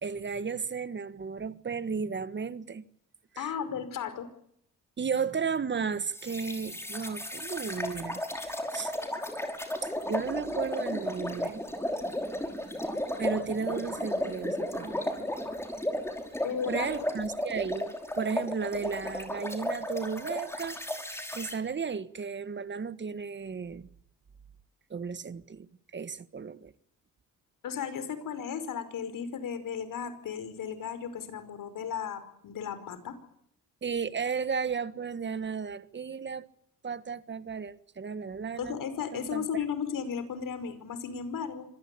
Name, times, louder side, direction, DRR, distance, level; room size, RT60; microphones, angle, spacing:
voice 1, 0.0-2.8 3.3-3.5 5.0-8.9 9.8-11.6 13.2-15.1 16.7-20.8 21.3-23.9 24.9-26.7 33.8-36.5 36.8-38.8 39.1-39.5, right 5 dB, 35° right, 1.7 m, -34 dB
voice 2, 3.4-4.3 16.4-17.0 27.6-33.2 38.6-41.7, left 7 dB, 70° left, 5.3 m, -35 dB
sound 1, 6.1-21.6, left 1 dB, 5° left, 5.6 m, -34 dB
26.0 x 18.5 x 8.6 m
cardioid pair, 105°, 34 cm